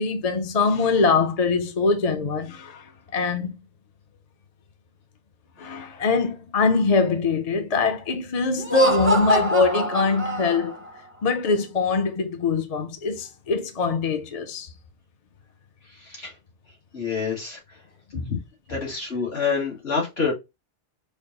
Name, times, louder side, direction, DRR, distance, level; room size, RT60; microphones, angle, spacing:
voice 1, 0.0-3.5 5.6-10.8 11.2-14.7 18.1-18.3, left 4 dB, 45° left, 0.6 m, -23 dB
Laughter, 8.6-10.9, equal, 15° right, 0.4 m, -24 dB
voice 2, 15.8-16.3 16.9-17.8 18.3-18.4 18.7-20.3, left 5 dB, 65° left, 2.1 m, -27 dB
5.2 x 2.3 x 3.8 m
omnidirectional pair, 1.2 m